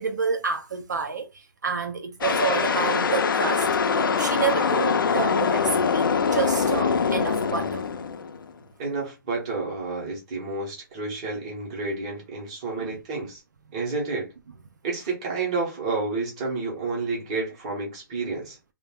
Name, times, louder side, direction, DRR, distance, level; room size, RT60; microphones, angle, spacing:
voice 1, 0.0-7.8 12.8-12.9, right 5 dB, 55° right, 0.4 m, -29 dB
sound 1, 2.2-8.5, left 5 dB, 70° left, 0.4 m, -23 dB
voice 2, 8.8-13.4 13.7-14.3 14.8-18.6, right 3 dB, 15° right, 0.6 m, -30 dB
2.4 x 2.0 x 3.4 m
hypercardioid pair, 180°, 12 cm